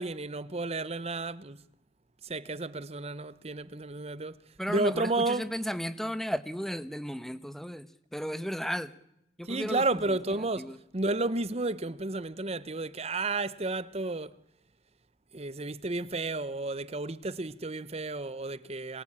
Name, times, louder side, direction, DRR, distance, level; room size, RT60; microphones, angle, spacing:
voice 1, 0.0-1.6 2.2-4.3 4.7-5.4 9.5-14.3 15.3-19.0, right 2 dB, 35° right, 1.0 m, -32 dB
voice 2, 4.6-8.9 9.4-10.8, equal, ahead, 1.2 m, -35 dB
26.5 x 22.5 x 8.8 m
head